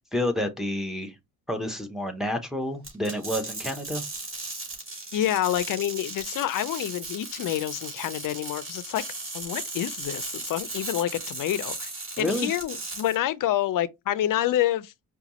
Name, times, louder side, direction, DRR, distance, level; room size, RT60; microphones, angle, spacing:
voice 1, 0.1-1.1 1.5-4.0 12.2-12.5, left 1 dB, ahead, 0.7 m, -29 dB
sound 1, 2.8-13.1, right 2 dB, 30° right, 2.5 m, -36 dB
voice 2, 5.1-9.0 9.3-11.9 12.2-15.1, left 12 dB, 55° left, 0.5 m, -28 dB
5.0 x 2.3 x 2.9 m
cardioid pair, 120°, 39 cm